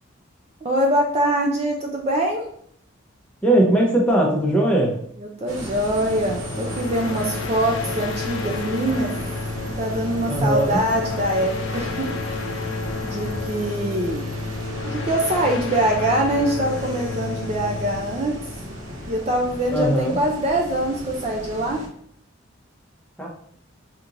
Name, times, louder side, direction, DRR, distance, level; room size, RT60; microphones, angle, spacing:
voice 1, 0.6-2.4 5.2-9.1 9.8-14.2 14.8-18.4 19.1-21.8, right 1 dB, 30° right, 1 dB, 0.4 m, -24 dB
voice 2, 3.4-5.0 10.3-10.8 19.7-20.2 23.2-23.3, right 1 dB, 5° left, -2 dB, 0.7 m, -19 dB
sound 1, 5.5-21.9, equal, 85° right, 0.8 m, -35 dB
sound 2, 6.1-19.4, left 3 dB, 70° left, 0.4 m, -31 dB
5.0 x 2.9 x 2.5 m, 0.66 s
head